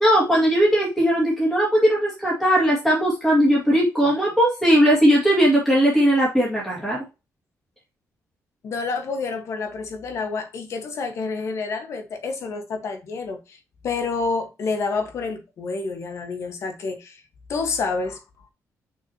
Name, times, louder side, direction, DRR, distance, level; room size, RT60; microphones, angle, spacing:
voice 1, 0.0-7.0, equal, 5° left, 2.3 m, -18 dB
voice 2, 8.6-13.6 13.8-17.2 17.5-18.2, left 4 dB, 55° left, 1.5 m, -28 dB
6.5 x 6.2 x 2.9 m
wide cardioid pair, 165°, 6 cm